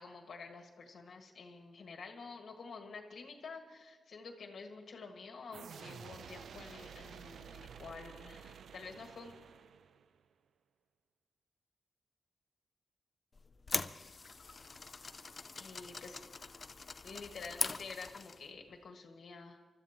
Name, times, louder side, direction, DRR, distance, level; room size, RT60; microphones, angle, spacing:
voice 1, 0.0-9.3 15.6-16.2 17.0-19.6, left 4 dB, 60° left, 2 dB, 1.7 m, -49 dB
sound 1, 5.5-10.2, right 7 dB, 75° right, 0.4 m, -51 dB
sound 2, 13.3-18.5, left 4 dB, 30° left, 0.4 m, -41 dB
28.0 x 13.0 x 2.9 m, 1.4 s
wide cardioid pair, 170°, 0 cm